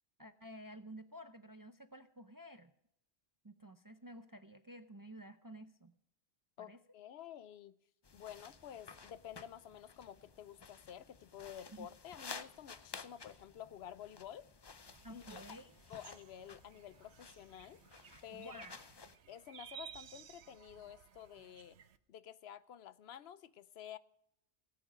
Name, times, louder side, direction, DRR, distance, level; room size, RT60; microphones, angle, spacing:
voice 1, 0.2-2.7 3.4-6.0 6.6-6.8 11.7-11.9 15.0-15.7 18.3-18.8, right 1 dB, 25° right, 0.5 m, -52 dB
voice 2, 6.6-7.8 8.1-14.5 15.1-15.6 15.9-17.8 18.2-18.6 19.3-21.8 22.1-24.0, left 10 dB, 75° left, 0.9 m, -51 dB
sound 1, 8.0-19.2, left 4 dB, 30° left, 0.5 m, -54 dB
sound 2, 14.9-22.0, right 8 dB, 80° right, 1.0 m, -57 dB
18.0 x 8.8 x 5.0 m
omnidirectional pair, 1.1 m